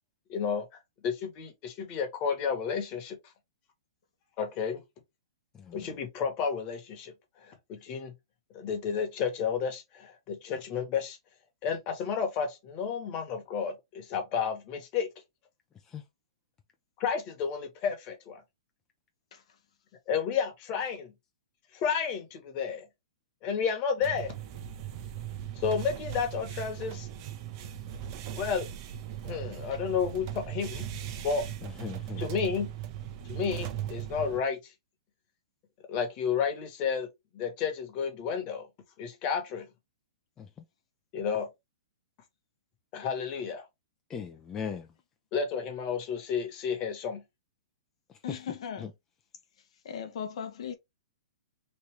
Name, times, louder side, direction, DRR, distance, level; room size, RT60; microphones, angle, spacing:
voice 1, 0.3-0.7 1.0-3.2 4.4-4.8 5.7-7.1 7.4-8.1 8.5-11.2 11.6-15.1 17.0-18.4 20.1-21.1 21.7-22.8 23.4-24.3 25.6-27.1 28.3-28.7 29.2-30.9 31.2-31.4 32.2-32.7 33.2-34.7 35.9-37.1 37.3-38.7 39.0-39.7 41.1-41.5 42.9-43.7 45.3-47.2, left 6 dB, 35° left, 1.2 m, -31 dB
voice 2, 5.5-5.9 15.9-16.0 31.6-32.3 40.4-40.6 44.1-44.9 48.1-48.4 48.8-48.9, left 7 dB, 15° left, 0.4 m, -39 dB
sound 1, 24.0-34.4, right 10 dB, 40° right, 0.7 m, -38 dB
voice 3, 48.2-48.9 49.8-50.7, left 7 dB, 65° left, 0.7 m, -37 dB
3.1 x 2.7 x 3.2 m
hypercardioid pair, 145°, 3 cm